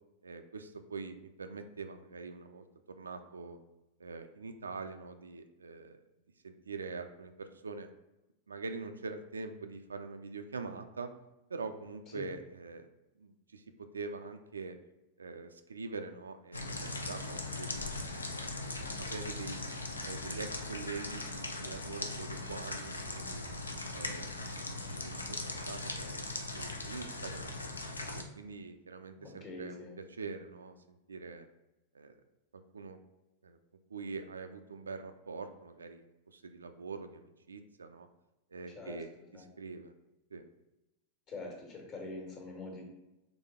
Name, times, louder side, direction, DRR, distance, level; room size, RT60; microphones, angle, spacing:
voice 1, 0.2-2.6 3.0-3.6 4.0-6.0 6.4-7.9 8.5-11.1 11.5-12.9 13.2-14.8 15.2-16.7 17.1-17.9 19.0-19.6 20.0-23.4 23.9-25.4 25.7-27.7 28.1-31.5 31.9-32.2 32.7-33.0 33.4-33.6 33.9-38.1 38.5-39.1 39.6-39.9 40.3-40.4, right 4 dB, 75° right, 8 dB, 0.3 m, -44 dB
sound 1, 16.5-28.2, left 2 dB, 80° left, 0.5 m, -39 dB
voice 2, 29.2-30.0 38.7-39.5 41.3-42.8, left 2 dB, 35° left, 0 dB, 1.4 m, -45 dB
4.0 x 3.3 x 3.6 m, 0.95 s
figure-of-eight pair, 90°, 0 cm